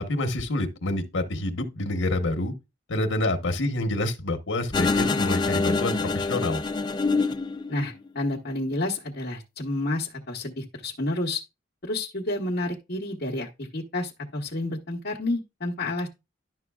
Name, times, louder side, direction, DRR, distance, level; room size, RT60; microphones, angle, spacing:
voice 1, 0.0-2.5 2.9-6.6, left 1 dB, 80° left, 1.0 m, -27 dB
sound 1, 4.7-8.1, left 3 dB, 20° left, 0.4 m, -25 dB
voice 2, 7.7-11.4 11.8-16.1, left 2 dB, 50° left, 1.0 m, -30 dB
11.0 x 6.0 x 2.3 m
head